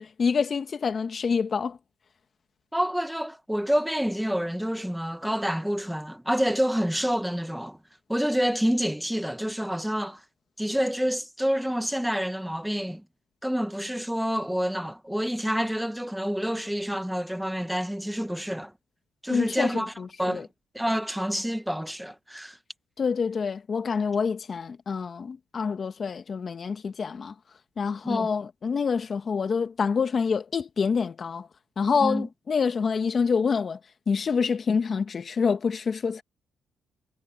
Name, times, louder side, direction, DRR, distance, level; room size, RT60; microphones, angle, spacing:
voice 1, 0.0-1.8 19.3-20.5 23.0-27.3 27.8-31.5 31.8-33.8 34.1-36.2, left 5 dB, 45° left, 1.7 m, -27 dB
voice 2, 2.7-7.8 8.1-10.2 10.6-13.0 13.4-18.7 19.2-19.9 20.2-20.5 20.7-22.6 28.0-28.3 32.0-32.3, equal, ahead, 1.4 m, -28 dB
cardioid pair, 90°, 0 cm